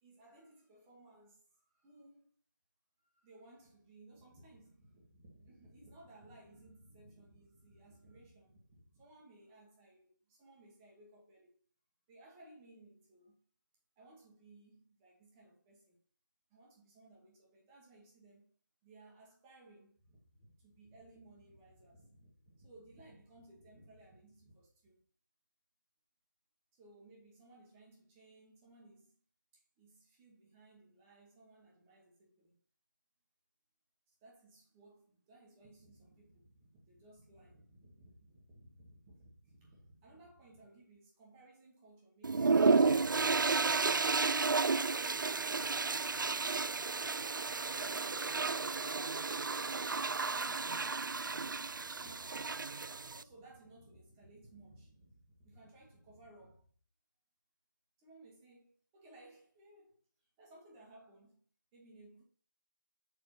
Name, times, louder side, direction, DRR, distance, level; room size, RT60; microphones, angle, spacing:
voice 1, 0.0-2.3 3.0-11.5 12.1-13.4 14.0-16.0 16.5-18.5 18.8-25.0 26.7-29.1 29.8-32.5 34.1-42.8 44.7-47.2 50.4-56.7 58.0-60.0 60.4-61.4 61.7-62.2, right 2 dB, 5° right, 1.0 m, -60 dB
sound 1, 42.2-53.2, right 4 dB, 75° right, 0.4 m, -32 dB
6.8 x 4.7 x 4.2 m
figure-of-eight pair, 170°, 11 cm